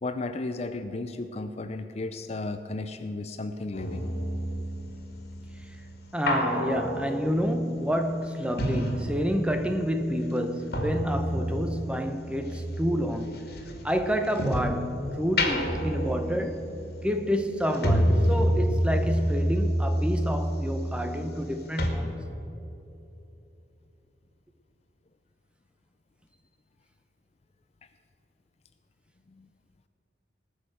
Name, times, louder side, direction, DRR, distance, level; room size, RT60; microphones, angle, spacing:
voice 1, 0.0-4.0 29.3-29.5, left 2 dB, 35° left, 0.5 m, -34 dB
sound 1, 3.7-9.7 10.0-14.8 15.2-21.5 21.8-21.9, equal, 55° left, 2.0 m, -29 dB
voice 2, 6.1-13.5 13.8-16.7 17.0-22.2, equal, 5° right, 0.8 m, -29 dB
19.0 x 6.5 x 7.9 m
head